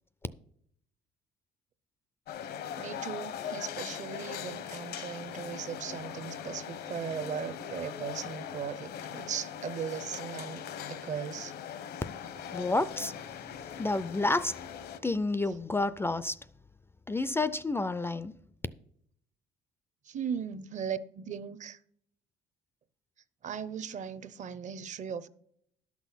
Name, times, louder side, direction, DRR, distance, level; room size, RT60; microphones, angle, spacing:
sound 1, 2.3-15.0, left 9 dB, 70° left, 0.9 m, -41 dB
voice 1, 2.8-11.5 20.1-21.8 23.4-25.3, right 7 dB, 45° right, 0.7 m, -38 dB
voice 2, 12.5-13.1 13.8-14.5 15.0-16.4 17.1-18.3, left 2 dB, 15° left, 0.4 m, -29 dB
11.5 x 6.1 x 5.7 m
cardioid pair, 110°, 17 cm